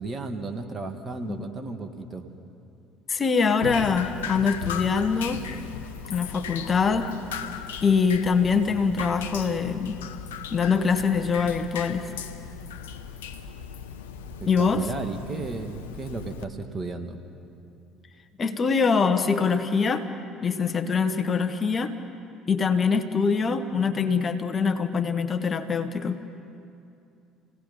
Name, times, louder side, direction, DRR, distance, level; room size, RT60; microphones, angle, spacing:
voice 1, 0.0-2.3 8.7-9.1 14.4-17.2, right 3 dB, 30° right, 5 dB, 2.1 m, -34 dB
voice 2, 3.1-5.4 6.1-7.1 7.8-10.0 10.5-12.1 14.5-14.8 18.4-20.1 20.4-22.0 22.5-26.2, left 5 dB, 35° left, 7 dB, 1.2 m, -24 dB
Drip, 3.6-16.5, left 8 dB, 80° left, 0.8 m, -37 dB
28.0 x 18.0 x 5.5 m, 2.6 s
hypercardioid pair, 60°, 0 cm